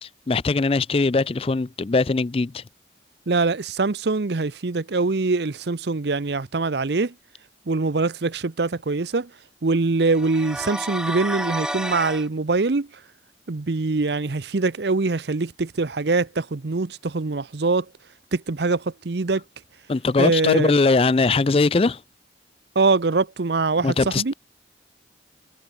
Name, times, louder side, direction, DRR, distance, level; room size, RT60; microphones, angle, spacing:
voice 1, 0.0-2.6 19.9-22.0 23.8-24.3, left 3 dB, 30° left, 0.4 m, -21 dB
voice 2, 3.3-7.1 7.7-9.3 9.6-12.9 13.5-17.9 18.3-19.4 20.2-20.8 22.8-24.3, right 3 dB, 70° right, 0.7 m, -23 dB
sound 1, 10.1-12.3, right 1 dB, 5° right, 0.8 m, -30 dB
head